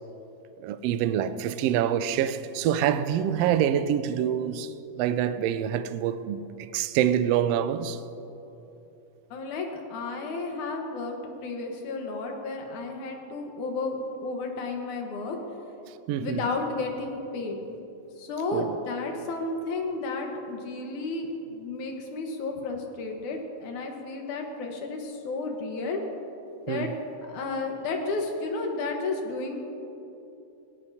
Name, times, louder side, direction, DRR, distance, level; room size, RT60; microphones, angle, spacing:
voice 1, 0.6-8.0 16.1-16.4 18.5-18.8 26.7-26.9, right 9 dB, 80° right, 1.5 m, -26 dB
voice 2, 9.3-15.4 16.2-17.6 18.2-26.0 26.7-26.9 27.3-29.6, left 3 dB, 85° left, 2.9 m, -32 dB
18.5 x 18.0 x 2.8 m
omnidirectional pair, 3.4 m